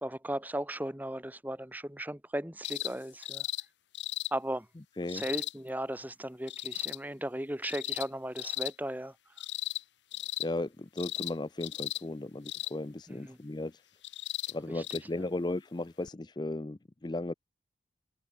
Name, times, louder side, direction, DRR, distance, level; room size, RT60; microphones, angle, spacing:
voice 1, 0.0-3.4 4.3-4.7 5.1-9.1 13.1-13.4 14.7-14.8 15.2-15.3, right 1 dB, 10° right, 1.5 m, -36 dB
sound 1, 2.6-2.9 3.2-3.6 3.9-4.3 5.1-5.5 6.5-7.0 7.6-8.1 8.4-8.7 9.4-9.8 10.1-10.5 11.0-11.3 11.6-12.0 12.5-12.7 14.0-14.5 14.8-15.0 16.1-16.2, left 16 dB, 75° left, 1.5 m, -36 dB
voice 2, 10.4-13.8 14.5-17.3, left 2 dB, 25° left, 0.4 m, -36 dB
head